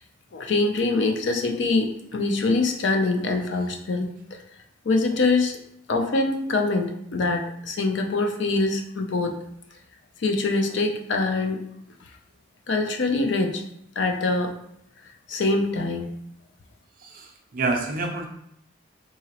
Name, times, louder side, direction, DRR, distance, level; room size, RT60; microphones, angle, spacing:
voice 1, 0.3-4.4 4.8-5.6 5.9-9.4 10.2-11.6 12.7-13.6 14.0-14.5 15.3-16.1, left 3 dB, 60° left, 4 dB, 0.4 m, -24 dB
voice 2, 17.0-18.3, right 3 dB, 45° right, 2 dB, 0.5 m, -28 dB
3.7 x 2.9 x 2.9 m, 0.73 s
head